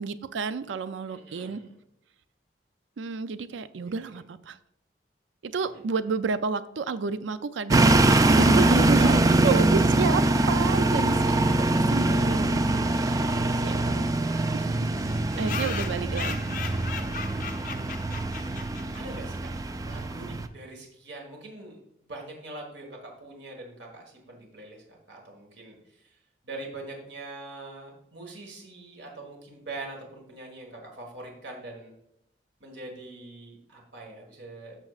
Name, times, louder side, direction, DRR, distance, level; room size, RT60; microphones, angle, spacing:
voice 1, 0.0-1.6 3.0-4.6 5.4-9.1 9.4-11.4 11.9-12.6 12.9-13.4 13.6-14.1 14.5-14.9 15.4-16.6, right 5 dB, 85° right, 13 dB, 0.4 m, -31 dB
voice 2, 1.1-1.6 3.8-4.1 5.7-5.8 8.8-9.7 13.0-14.2 14.9-16.4 18.9-19.5 19.8-26.1 26.4-31.9 32.6-34.8, right 2 dB, 70° right, 0 dB, 1.6 m, -43 dB
sound 1, 7.7-20.5, right 2 dB, 20° right, 0.3 m, -23 dB
sound 2, 13.3-13.4 13.6-13.7 14.0-14.1 14.3-14.4 15.0-19.2, left 6 dB, 45° left, 0.6 m, -38 dB
12.0 x 6.3 x 2.4 m, 0.78 s
head